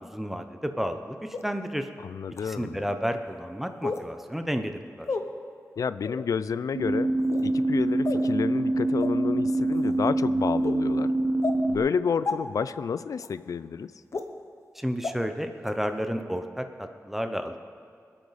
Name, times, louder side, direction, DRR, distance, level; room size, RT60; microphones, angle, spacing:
voice 1, 0.1-1.9 2.4-5.1 14.7-16.6 17.1-17.6, equal, 5° right, 7 dB, 0.8 m, -31 dB
sound 1, 1.3-1.4 2.3-2.4 3.8-4.1 5.0-5.2 6.0-6.2 7.2-7.5 8.0-8.3 9.0-9.1 9.7-9.9 10.6-10.7 11.4-11.6 12.2-12.3 13.2-13.3 14.1-14.2 15.0-15.1 15.6-15.7, left 4 dB, 60° left, 0.9 m, -31 dB
voice 2, 2.0-2.9 5.8-7.1 7.4-11.1 11.7-13.9, left 6 dB, 85° left, 15 dB, 0.4 m, -30 dB
sound 2, 6.8-11.8, right 2 dB, 50° right, 1.2 m, -25 dB
25.0 x 8.7 x 4.1 m, 2.3 s
wide cardioid pair, 120°, 6 cm